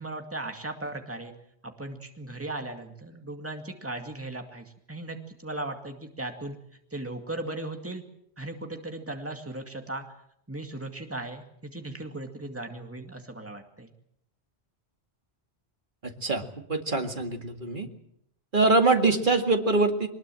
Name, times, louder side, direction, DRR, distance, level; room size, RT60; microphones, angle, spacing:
voice 1, 0.0-1.3 1.6-6.6 6.9-8.0 8.4-10.0 10.5-13.9, right 2 dB, 10° right, 4 dB, 2.2 m, -37 dB
voice 2, 16.0-17.9 18.5-20.1, right 3 dB, 50° right, 5 dB, 2.4 m, -24 dB
22.5 x 20.5 x 7.7 m, 0.74 s
omnidirectional pair, 1.1 m